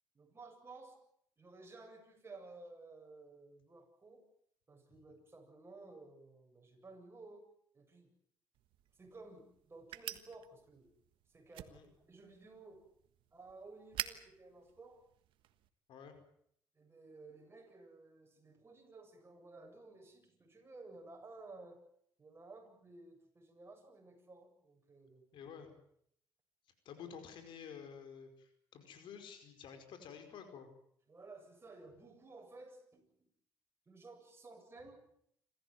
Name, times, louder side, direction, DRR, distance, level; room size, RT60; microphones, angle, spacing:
voice 1, 0.1-1.0 1.4-4.2 4.7-7.5 7.7-8.2 8.9-10.9 11.3-11.8 12.1-12.9 13.3-15.1 16.8-21.9 22.2-25.3 31.1-33.3 33.9-35.1, right 3 dB, 30° right, 3 dB, 7.6 m, -55 dB
sound 1, 8.5-15.7, right 13 dB, 75° right, 1.4 m, -49 dB
voice 2, 25.3-25.7 26.9-30.7, left 7 dB, 70° left, 7 dB, 5.0 m, -51 dB
27.0 x 14.5 x 9.3 m, 0.69 s
supercardioid pair, 75°, 9 cm